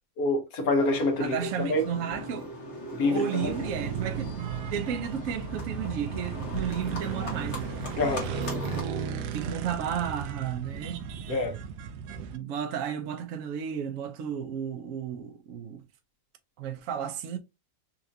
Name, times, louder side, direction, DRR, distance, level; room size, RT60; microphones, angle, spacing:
voice 1, 0.2-1.8 2.9-3.5 7.9-8.3 11.3-11.6, left 2 dB, 65° left, 1.4 m, -26 dB
Livestock farm animals working animals, 0.8-8.8, left 2 dB, 50° left, 1.3 m, -39 dB
voice 2, 1.2-2.5 3.0-7.7 8.8-9.0 9.3-11.0 12.3-15.8 16.6-17.4, right 8 dB, 65° right, 0.8 m, -33 dB
sound 1, 3.4-12.4, right 7 dB, 90° right, 1.2 m, -35 dB
4.1 x 2.5 x 2.6 m
omnidirectional pair, 1.7 m